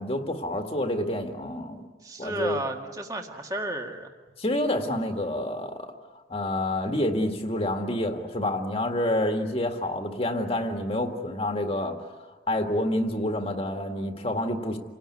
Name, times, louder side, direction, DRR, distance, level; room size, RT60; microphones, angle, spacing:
voice 1, 0.0-1.8 2.2-2.7 4.4-5.9 6.3-12.0 12.5-14.8, left 1 dB, 30° left, 4 dB, 1.9 m, -28 dB
voice 2, 2.0-4.1, right 1 dB, 20° right, 2 dB, 1.9 m, -33 dB
28.5 x 19.0 x 9.8 m, 1.3 s
head